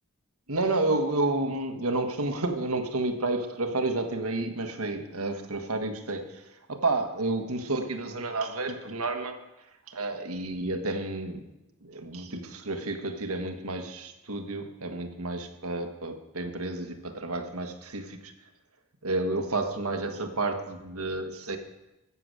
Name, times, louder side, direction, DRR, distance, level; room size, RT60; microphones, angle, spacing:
voice 1, 0.5-9.4 9.9-11.4 11.8-18.3 19.0-21.6, right 2 dB, 85° right, 6 dB, 1.5 m, -30 dB
14.5 x 7.0 x 7.9 m, 0.95 s
head